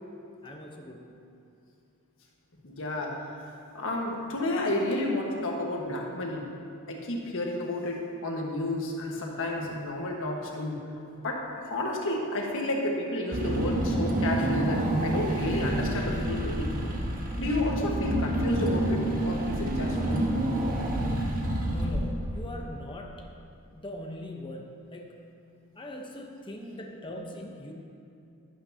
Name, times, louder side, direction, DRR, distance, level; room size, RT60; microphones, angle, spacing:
voice 1, 0.4-1.1 21.7-23.3 23.7-25.2 25.8-27.7, left 1 dB, 20° left, 1 dB, 0.9 m, -40 dB
voice 2, 2.6-6.5 6.9-10.8 11.2-16.7 17.4-20.3, left 1 dB, 60° left, 0 dB, 1.5 m, -31 dB
Car / Engine, 13.3-22.5, right 1 dB, 40° right, 1.3 m, -28 dB
11.5 x 11.5 x 2.8 m, 2.8 s
head